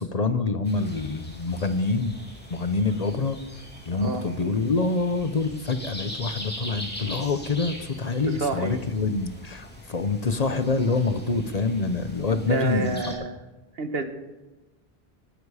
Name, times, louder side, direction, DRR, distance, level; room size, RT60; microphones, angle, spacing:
voice 1, 0.0-2.1 2.5-3.4 3.9-13.0, left 3 dB, 45° left, 10 dB, 0.9 m, -26 dB
sound 1, 0.6-13.1, equal, 10° left, 2.9 m, -42 dB
voice 2, 3.9-4.2 8.1-8.7 12.3-13.4 13.7-14.0, right 3 dB, 75° right, 7 dB, 1.6 m, -29 dB
19.0 x 10.5 x 4.9 m, 1.1 s
omnidirectional pair, 1.0 m